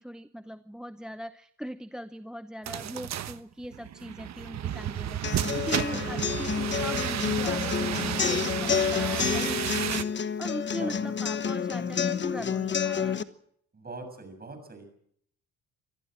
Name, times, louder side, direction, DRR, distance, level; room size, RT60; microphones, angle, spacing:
voice 1, 0.0-5.2 5.5-13.2, equal, ahead, 12 dB, 0.7 m, -40 dB
sound 1, 2.7-10.0, right 11 dB, 55° right, 1.2 m, -32 dB
sound 2, 5.2-13.2, left 7 dB, 35° left, 1.2 m, -29 dB
voice 2, 5.9-6.4 7.0-7.3 10.6-10.9 13.7-14.9, right 3 dB, 30° right, 7 dB, 7.1 m, -43 dB
24.5 x 14.5 x 7.7 m, 0.67 s
cardioid pair, 95°, 32 cm